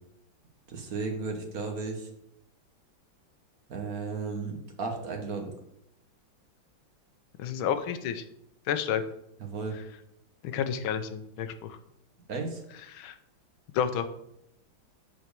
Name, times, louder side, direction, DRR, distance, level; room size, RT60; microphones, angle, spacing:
voice 1, 0.7-2.1 3.7-5.5 9.4-9.8 12.3-12.6, right 4 dB, 50° right, 3 dB, 1.4 m, -34 dB
voice 2, 7.4-8.2 8.7-9.0 10.4-11.8 12.9-13.1 13.7-14.1, left 8 dB, 85° left, 10 dB, 1.5 m, -30 dB
7.1 x 4.5 x 6.7 m, 0.78 s
omnidirectional pair, 2.2 m